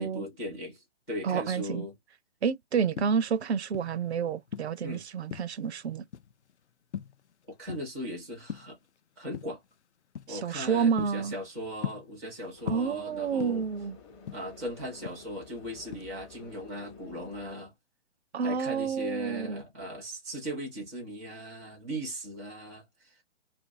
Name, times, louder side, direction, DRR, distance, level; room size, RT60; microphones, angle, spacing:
voice 1, 0.0-1.9 4.8-5.0 7.5-8.8 9.2-9.6 10.3-13.7 14.3-17.7 18.4-23.1, equal, 5° left, 0.4 m, -38 dB
voice 2, 1.2-1.9 2.4-6.0 10.3-11.3 12.7-14.0 18.3-19.6, right 6 dB, 70° right, 0.5 m, -29 dB
sound 1, 2.8-4.1 4.5-5.7 6.1-6.5 6.9-8.1 8.3-8.9 9.3-9.7 10.1-10.4 10.7-12.4 12.7-13.8 14.1-15.6 15.9-16.2, left 8 dB, 75° left, 0.5 m, -39 dB
sound 2, 12.5-17.5, left 5 dB, 25° left, 0.8 m, -51 dB
2.6 x 2.5 x 2.5 m
figure-of-eight pair, 135°, 35 cm